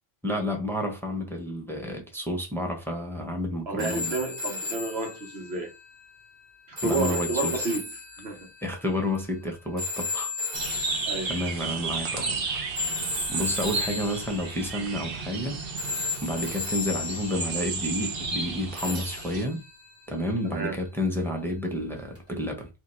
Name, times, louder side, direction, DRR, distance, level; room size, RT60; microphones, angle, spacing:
voice 1, 0.2-4.1 6.8-7.7 8.6-10.3 11.3-12.4 13.3-15.6 16.2-19.6 20.1-22.7, left 1 dB, ahead, 1.0 m, -30 dB
voice 2, 3.7-5.7 6.7-8.5 10.7-11.3 18.8-19.0 20.4-20.8, right 3 dB, 90° right, 1.4 m, -31 dB
sound 1, 3.8-12.0 12.8-15.5 15.8-17.9 18.8-21.0 22.2-22.3, left 3 dB, 40° right, 1.4 m, -35 dB
sound 2, 10.5-19.4, right 4 dB, 65° right, 1.1 m, -33 dB
3.8 x 2.9 x 4.4 m
omnidirectional pair, 1.0 m